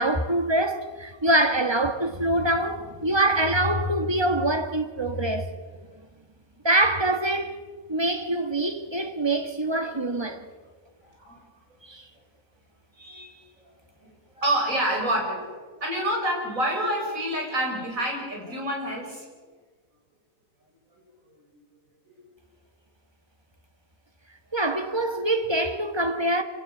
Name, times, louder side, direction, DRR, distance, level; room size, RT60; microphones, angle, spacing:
voice 1, 0.0-5.5 6.6-7.6 7.9-10.5 11.8-12.0 24.5-26.4, right 1 dB, 20° right, 1.6 m, -24 dB
voice 2, 8.6-9.1 9.8-10.3 11.0-11.4 13.0-13.4 14.0-14.1 14.3-19.3 21.5-21.6 24.9-25.2, right 1 dB, 70° right, 6.2 m, -29 dB
26.0 x 17.0 x 7.9 m
omnidirectional pair, 1.5 m